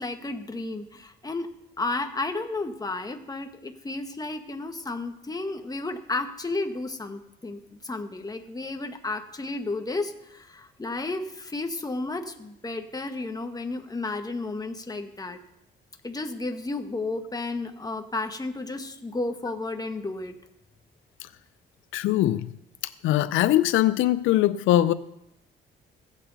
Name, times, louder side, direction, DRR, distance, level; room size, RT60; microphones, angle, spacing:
voice 1, 0.0-15.4 16.0-20.4, left 2 dB, 20° left, 6 dB, 1.2 m, -32 dB
voice 2, 21.9-22.5 22.8-24.9, left 14 dB, 85° left, 14 dB, 0.4 m, -22 dB
16.0 x 8.3 x 4.0 m, 0.86 s
cardioid pair, 90°, 20 cm